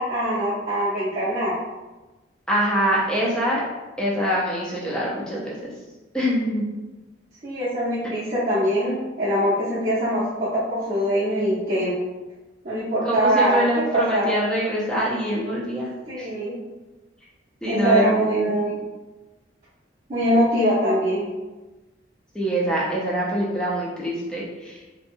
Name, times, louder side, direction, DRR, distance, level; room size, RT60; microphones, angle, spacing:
voice 1, 0.0-1.6 7.4-12.0 12.6-14.3 16.1-16.5 17.7-18.8 20.1-21.3, equal, 35° right, -11 dB, 0.6 m, -23 dB
voice 2, 2.5-3.6 4.0-5.7 6.1-6.6 13.1-15.9 16.2-16.3 17.6-18.1 22.3-24.8, equal, 5° left, -6 dB, 0.4 m, -24 dB
2.7 x 2.1 x 2.6 m, 1.1 s
head